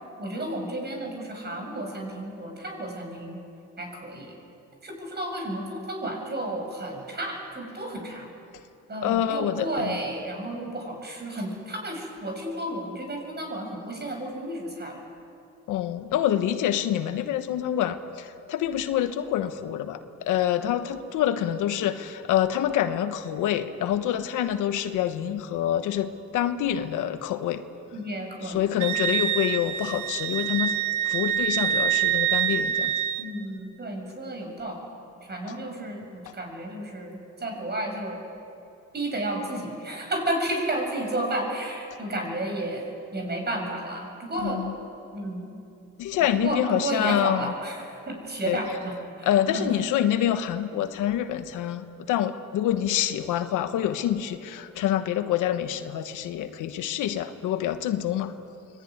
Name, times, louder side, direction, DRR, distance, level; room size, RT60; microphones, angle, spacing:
voice 1, 0.2-3.4 3.8-4.3 4.8-8.3 8.9-15.0 27.9-28.8 33.2-34.8 35.3-38.2 38.9-42.8 43.1-44.6 45.1-45.5 46.3-49.7, right 1 dB, 35° right, 2 dB, 7.8 m, -32 dB
voice 2, 9.0-10.0 15.7-20.0 20.3-27.6 28.4-30.7 31.0-32.9 44.4-44.7 46.0-47.5 48.5-48.6 49.2-58.3, left 11 dB, 90° left, 9 dB, 1.3 m, -26 dB
Wind instrument woodwind instrument, 28.8-33.3, right 10 dB, 90° right, 1.2 m, -26 dB
24.5 x 20.5 x 9.7 m, 2.7 s
cardioid pair, 90°, 30 cm